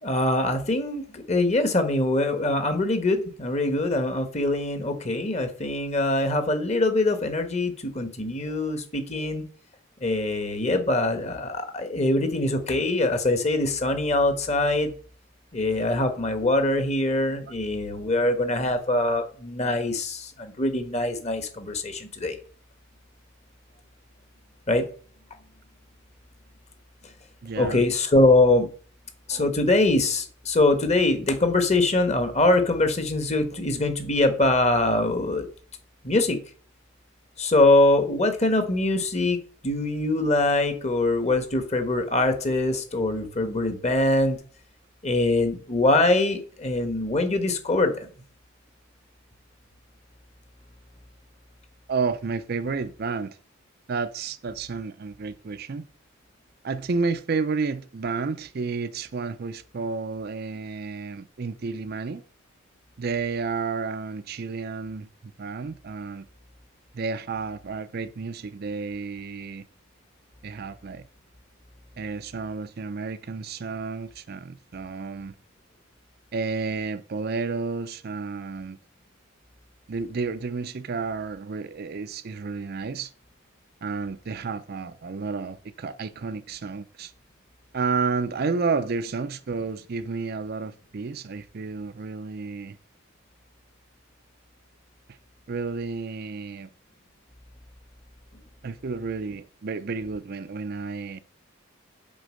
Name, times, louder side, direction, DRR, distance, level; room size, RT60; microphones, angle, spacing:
voice 1, 0.0-9.4 10.0-14.9 15.5-22.4 24.7-24.8 27.6-28.7 29.3-35.5 36.0-36.4 37.4-39.4 39.6-44.4 45.0-47.9, left 2 dB, 35° left, 1.3 m, -23 dB
voice 2, 27.4-27.9 29.3-29.4 51.9-53.4 53.9-55.8 56.6-62.2 63.0-66.3 66.9-69.7 70.4-71.0 72.0-75.3 76.3-78.8 79.9-83.1 83.8-87.1 87.7-92.8 95.5-96.7 98.6-101.2, right 4 dB, 50° right, 0.5 m, -31 dB
7.7 x 4.5 x 6.4 m
head